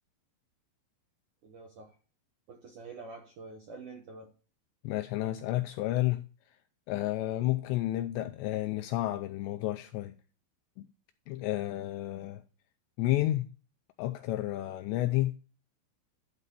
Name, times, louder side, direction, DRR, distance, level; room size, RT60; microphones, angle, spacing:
voice 1, 1.4-2.0 2.5-4.3, right 3 dB, 70° right, 1.9 m, -47 dB
voice 2, 4.8-6.2 6.9-10.1 10.8-10.9 11.3-12.4 13.0-13.5 14.0-15.4, left 15 dB, 85° left, 2.5 m, -31 dB
12.0 x 4.2 x 6.7 m
omnidirectional pair, 5.5 m